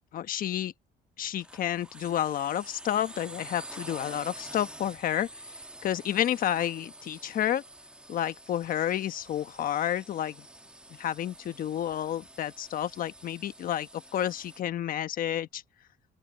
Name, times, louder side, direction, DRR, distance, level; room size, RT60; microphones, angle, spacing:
voice 1, 0.1-0.7 1.2-5.3 5.8-7.6 8.1-10.4 11.0-15.6, left 11 dB, 55° left, 1.2 m, -30 dB
sound 1, 1.4-14.6, right 1 dB, 5° right, 1.5 m, -48 dB
open air
cardioid pair, 110°, 17 cm